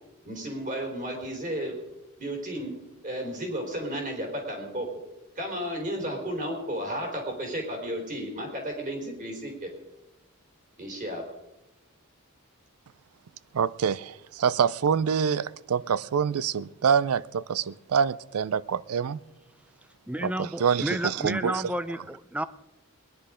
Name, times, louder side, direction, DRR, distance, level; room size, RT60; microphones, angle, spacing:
voice 1, 0.2-1.7 2.2-2.7 3.0-4.9 5.4-9.7 10.8-11.2, equal, 35° right, 4.1 m, -33 dB
voice 2, 13.5-19.2 20.2-21.7, right 7 dB, 80° right, 0.4 m, -26 dB
voice 3, 20.1-22.4, right 1 dB, 5° right, 0.5 m, -31 dB
20.0 x 10.5 x 5.0 m
head